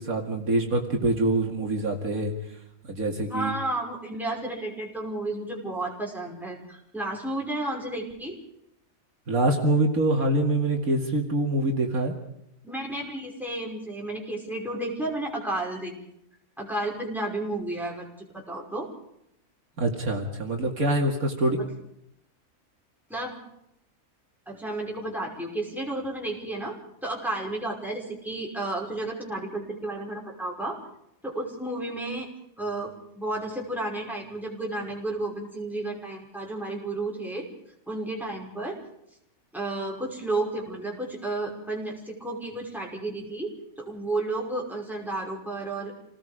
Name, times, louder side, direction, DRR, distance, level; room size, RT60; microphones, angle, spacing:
voice 1, 0.0-2.3 2.9-3.5 9.3-12.1 19.8-21.6, right 2 dB, 65° right, 1 dB, 2.7 m, -25 dB
voice 2, 3.3-8.4 12.6-15.9 16.6-18.1 18.3-18.9 21.5-21.7 23.1-23.3 24.5-26.8 27.0-30.8 31.2-32.3 32.6-37.5 37.9-38.8 39.5-45.9, right 2 dB, ahead, -2 dB, 5.6 m, -32 dB
28.0 x 19.0 x 5.1 m, 0.79 s
omnidirectional pair, 1.6 m